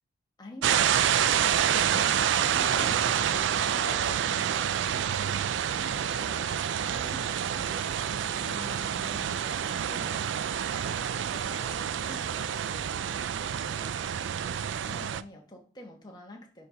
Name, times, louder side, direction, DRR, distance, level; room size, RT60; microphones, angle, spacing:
voice 1, 0.4-2.0 2.4-3.1 3.7-5.1 6.2-6.4 6.8-10.4 10.8-14.0 14.8-16.7, left 1 dB, 20° left, 1 dB, 1.3 m, -47 dB
sound 1, 0.6-15.2, right 9 dB, 70° right, 0.3 m, -28 dB
voice 2, 1.7-3.4 3.8-4.2 5.3-5.4 5.7-6.9, left 3 dB, 40° left, 7 dB, 0.7 m, -46 dB
4.9 x 4.5 x 5.6 m, 0.39 s
head